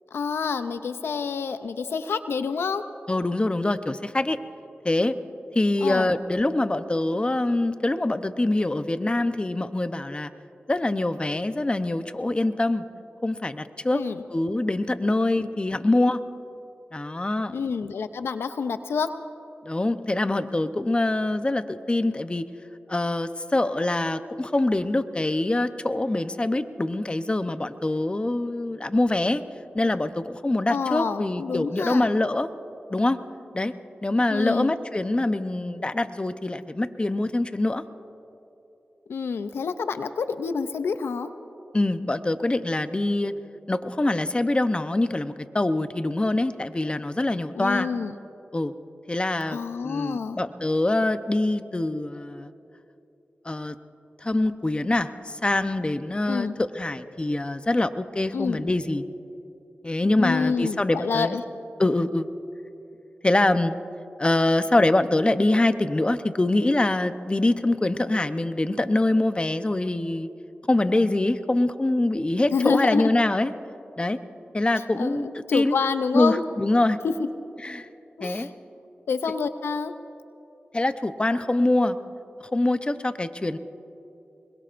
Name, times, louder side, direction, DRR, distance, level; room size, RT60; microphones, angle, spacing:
voice 1, 0.1-2.8 5.8-6.1 13.9-14.2 15.4-15.5 15.8-15.9 17.5-19.1 30.7-32.1 34.3-34.7 39.1-41.3 47.6-48.1 49.5-50.4 56.3-56.5 58.3-58.6 60.2-61.4 72.5-73.1 74.7-76.4 77.0-77.3 78.2-78.5 79.1-79.9, left 5 dB, 90° left, 10 dB, 0.5 m, -28 dB
voice 2, 3.1-4.4 4.8-5.1 5.5-10.3 10.7-12.8 13.2-14.0 14.3-16.2 16.9-17.6 19.6-22.5 22.9-29.4 29.7-32.5 32.9-33.2 33.5-33.7 34.0-37.8 41.7-43.3 43.7-47.9 48.5-48.7 49.1-52.5 53.4-53.8 54.2-59.1 59.8-61.4 61.8-62.3 63.2-63.8 64.2-70.3 70.7-73.5 74.0-74.2 74.5-75.8 76.1-77.0 77.6-77.9 78.2-78.5 80.7-82.0 82.5-83.6, left 2 dB, 25° left, 10 dB, 0.8 m, -24 dB
25.0 x 22.0 x 2.6 m, 2.8 s
cardioid pair, 45°, 4 cm